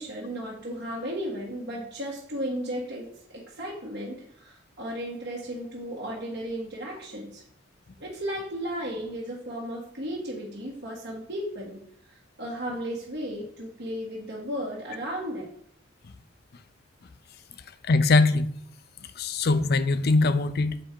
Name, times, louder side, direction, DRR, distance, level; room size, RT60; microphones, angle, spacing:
voice 1, 0.0-7.4 8.0-11.8 12.1-15.5, equal, 60° right, -5 dB, 1.6 m, -35 dB
voice 2, 17.8-18.5 19.2-20.8, left 3 dB, 55° left, 12 dB, 0.5 m, -22 dB
7.5 x 5.0 x 4.5 m, 0.65 s
head